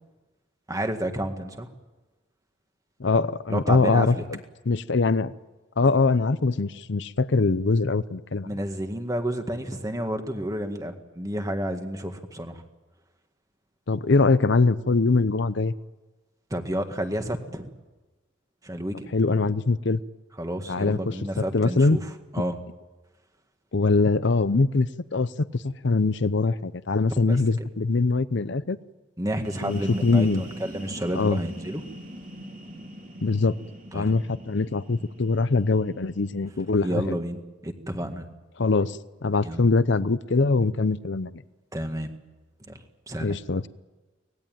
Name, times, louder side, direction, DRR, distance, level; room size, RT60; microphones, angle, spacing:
voice 1, 0.7-1.7 3.5-4.2 8.4-12.6 16.5-17.7 18.6-19.1 20.4-22.6 27.2-27.4 29.2-31.8 33.9-34.1 36.8-38.3 39.4-39.6 41.7-42.1 42.7-43.4, right 1 dB, 15° right, 6 dB, 1.8 m, -31 dB
voice 2, 3.0-4.4 4.7-5.3 5.8-8.5 13.9-15.7 19.1-20.0 20.7-22.0 23.7-28.8 29.6-30.4 31.1-31.4 33.2-33.5 33.9-37.2 38.6-41.4 43.2-43.7, left 3 dB, 60° left, 15 dB, 0.7 m, -23 dB
sound 1, 29.3-36.9, equal, 40° right, 3.5 m, -41 dB
24.5 x 19.5 x 9.2 m, 1.2 s
head